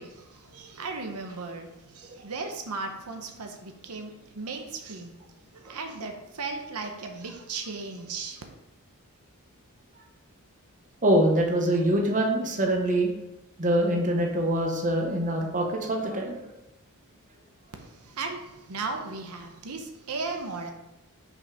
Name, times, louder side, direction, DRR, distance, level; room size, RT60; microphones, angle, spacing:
voice 1, 0.0-8.4 17.8-20.7, right 4 dB, 85° right, 4 dB, 0.9 m, -36 dB
voice 2, 11.0-13.1 13.6-16.5, right 1 dB, 35° right, 2 dB, 1.1 m, -24 dB
6.3 x 5.1 x 4.8 m, 0.95 s
head